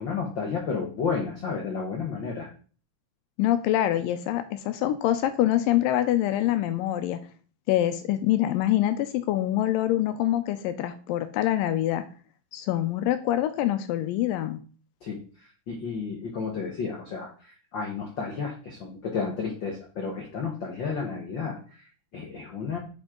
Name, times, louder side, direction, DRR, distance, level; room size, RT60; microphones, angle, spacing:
voice 1, 0.0-2.5 15.0-22.8, left 5 dB, 65° left, 1 dB, 1.2 m, -32 dB
voice 2, 3.4-7.2 7.7-12.0 12.5-14.6, left 13 dB, 85° left, 10 dB, 2.3 m, -25 dB
7.6 x 6.2 x 3.7 m, 0.39 s
omnidirectional pair, 3.9 m